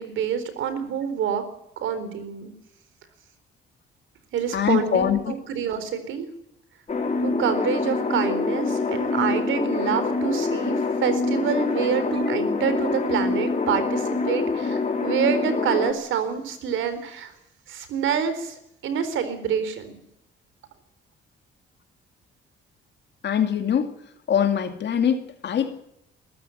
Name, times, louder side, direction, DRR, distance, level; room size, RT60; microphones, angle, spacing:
voice 1, 0.0-1.4 1.8-2.5 4.3-6.3 7.2-17.3 17.7-18.6 18.8-20.0, right 7 dB, 80° right, 11 dB, 4.1 m, -27 dB
voice 2, 4.5-5.3 23.2-23.9 24.3-25.8, left 8 dB, 60° left, 7 dB, 2.4 m, -23 dB
sound 1, 6.9-15.9, left 3 dB, 35° left, 4.0 m, -25 dB
21.5 x 13.5 x 9.1 m, 0.78 s
cardioid pair, 90°, 20 cm